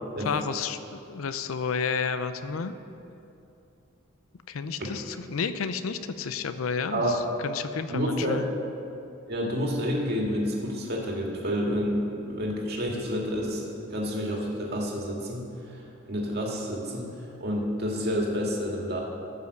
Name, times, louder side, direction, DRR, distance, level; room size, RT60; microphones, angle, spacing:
voice 1, 0.2-2.7 4.5-8.5, left 5 dB, 85° left, 11 dB, 0.5 m, -31 dB
voice 2, 6.9-7.2 7.9-8.4 9.3-15.8 16.1-17.1 17.4-19.0, equal, 50° right, -1 dB, 2.0 m, -29 dB
14.5 x 5.5 x 6.6 m, 2.8 s
head